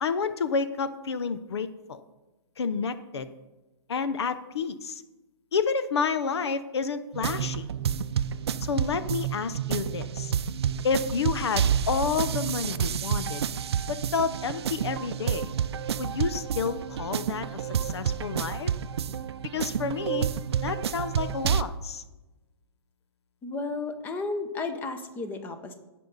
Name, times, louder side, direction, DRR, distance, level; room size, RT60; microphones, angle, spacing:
voice 1, 0.0-2.0 2.6-3.3 3.9-5.0 5.5-7.7 8.6-10.3 10.8-13.4 13.9-15.5 16.0-18.7 19.5-20.3 20.6-22.0, left 5 dB, 85° left, 12 dB, 0.8 m, -30 dB
sound 1, 7.1-21.6, right 8 dB, 75° right, 0.5 m, -29 dB
voice 2, 23.4-25.7, left 3 dB, 15° left, 8 dB, 0.8 m, -33 dB
16.0 x 5.6 x 4.0 m, 1.1 s
hypercardioid pair, 155°, 14 cm